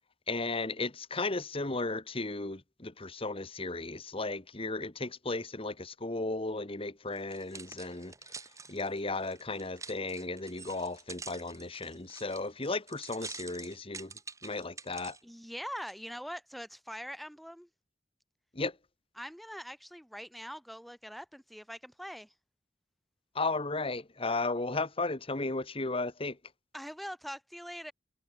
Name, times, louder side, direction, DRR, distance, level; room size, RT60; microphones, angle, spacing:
voice 1, 0.3-8.1 8.7-14.1 14.4-15.2 18.5-18.7 23.3-26.4, left 3 dB, 30° left, 1.8 m, -35 dB
sound 1, 7.2-15.2 15.8-15.9, right 4 dB, 20° right, 2.4 m, -47 dB
voice 2, 15.2-17.7 19.2-22.3 26.7-27.9, equal, ahead, 5.0 m, -43 dB
head